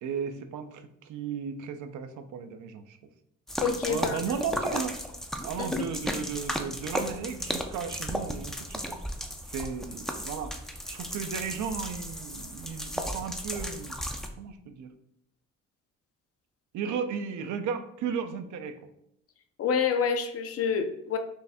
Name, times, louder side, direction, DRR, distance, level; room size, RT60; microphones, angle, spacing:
voice 1, 0.0-3.0 3.9-5.0 5.4-9.0 9.5-10.5 10.9-14.0 14.4-14.9 16.7-18.8, right 6 dB, 75° right, 9 dB, 0.5 m, -35 dB
sound 1, 3.5-14.3, equal, ahead, 0.4 m, -35 dB
voice 2, 3.6-4.2 5.6-5.9 19.6-21.2, left 6 dB, 50° left, 7 dB, 0.6 m, -28 dB
4.5 x 2.6 x 3.4 m, 0.76 s
cardioid pair, 90°, 30 cm